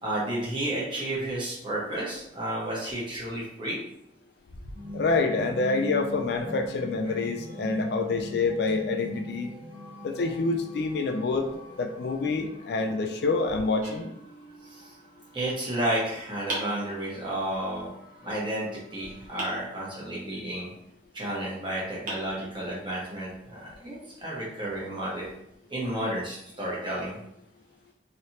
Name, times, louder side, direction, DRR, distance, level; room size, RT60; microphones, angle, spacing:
voice 1, 0.0-3.8 14.7-14.9 15.3-17.9 18.2-20.7 21.1-25.3 25.7-27.2, right 1 dB, 25° right, -6 dB, 1.1 m, -32 dB
sound 1, 4.7-19.5, equal, 80° right, 1.1 m, -43 dB
voice 2, 4.9-9.5 10.0-11.5 11.8-14.1, left 3 dB, 60° left, 5 dB, 0.4 m, -27 dB
sound 2, 13.8-14.8 16.5-17.5 19.4-20.3 21.5-21.6 22.1-23.0, right 2 dB, 50° right, 0.9 m, -40 dB
3.2 x 2.9 x 2.8 m, 0.79 s
head